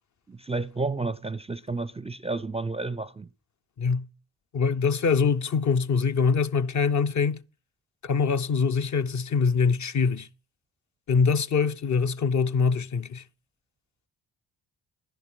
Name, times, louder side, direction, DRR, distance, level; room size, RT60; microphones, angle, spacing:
voice 1, 0.3-3.3, right 3 dB, 15° right, 0.5 m, -31 dB
voice 2, 4.5-7.4 8.0-10.3 11.1-13.2, left 5 dB, 40° left, 0.6 m, -24 dB
10.5 x 10.0 x 4.8 m
supercardioid pair, 50°, 43 cm